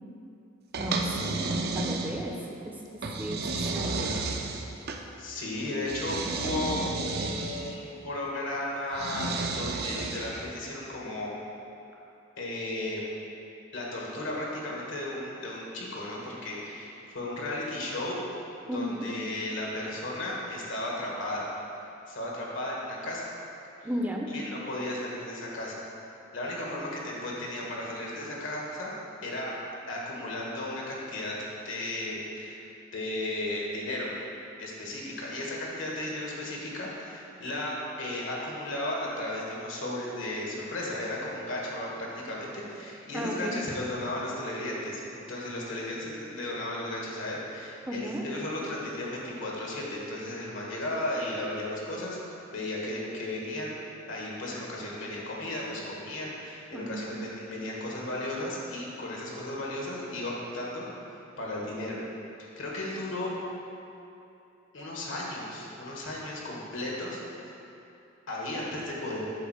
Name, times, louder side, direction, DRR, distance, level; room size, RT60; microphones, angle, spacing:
sound 1, 0.7-2.4 3.0-5.0 5.9-7.7 8.9-10.5, right 3 dB, 55° right, 0.5 m, -32 dB
voice 1, 0.8-2.3 2.7-3.4 3.7-4.1 18.7-19.1 23.8-24.3 43.1-43.6 47.9-48.2 56.7-57.1, equal, 10° right, 0 dB, 0.6 m, -34 dB
voice 2, 5.2-11.3 12.4-13.1 13.7-18.2 18.7-21.5 22.1-23.3 24.3-25.9 26.3-28.9 29.2-29.5 29.9-31.4 31.6-32.6 32.9-34.1 34.6-52.2 52.5-53.7 54.1-60.8 61.4-62.0 62.6-63.3 64.7-67.2 68.3-69.3, left 1 dB, 80° left, -3 dB, 1.6 m, -35 dB
8.6 x 3.7 x 6.4 m, 2.8 s
head